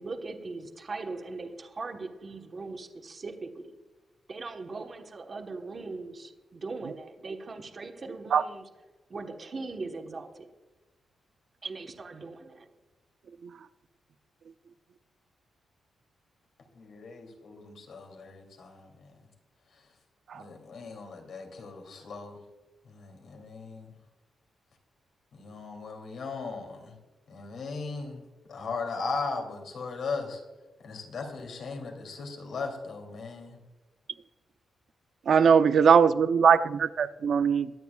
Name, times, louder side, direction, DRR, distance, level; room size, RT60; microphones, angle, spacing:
voice 1, 0.0-3.7 4.3-8.7 9.1-10.5 11.6-12.7, right 3 dB, 35° right, 4 dB, 1.2 m, -40 dB
voice 2, 16.7-19.1 20.4-22.3 22.9-23.9 25.3-27.0 27.3-28.2 28.5-30.4 30.8-33.6, left 4 dB, 65° left, 3 dB, 2.8 m, -38 dB
voice 3, 35.3-37.7, right 6 dB, 55° right, 12 dB, 0.6 m, -21 dB
23.0 x 9.5 x 2.4 m, 1.2 s
wide cardioid pair, 160°, 0 cm